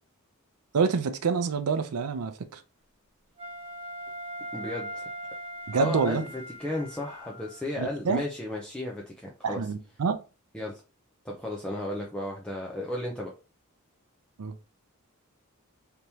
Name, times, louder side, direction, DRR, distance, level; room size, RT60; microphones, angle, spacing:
voice 1, 0.7-2.6 5.7-6.2 7.8-8.2 9.4-10.2 14.4-14.5, right 5 dB, 85° right, 0.5 m, -27 dB
Wind instrument woodwind instrument, 3.4-7.7, equal, 25° right, 1.1 m, -40 dB
voice 2, 4.5-5.1 5.8-9.6 10.5-10.8 11.2-13.3, left 1 dB, 5° left, 0.5 m, -34 dB
3.4 x 2.9 x 2.7 m
head